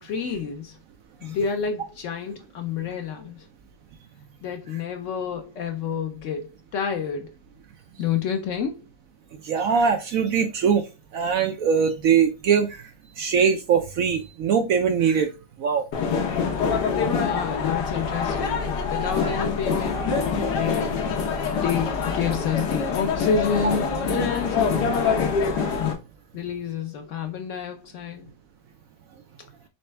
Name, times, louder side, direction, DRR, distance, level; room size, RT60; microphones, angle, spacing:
voice 1, 0.0-0.8 1.2-3.4 4.4-7.3 8.0-8.9 17.2-20.1 20.5-21.0 21.6-25.3 26.3-28.3, left 6 dB, 85° left, 0.6 m, -29 dB
voice 2, 9.5-10.8 11.1-12.7 13.2-15.3 15.6-15.8, right 6 dB, 70° right, 0.8 m, -21 dB
sound 1, 15.9-25.9, left 5 dB, 70° left, 1.4 m, -25 dB
4.2 x 3.3 x 3.2 m
omnidirectional pair, 1.9 m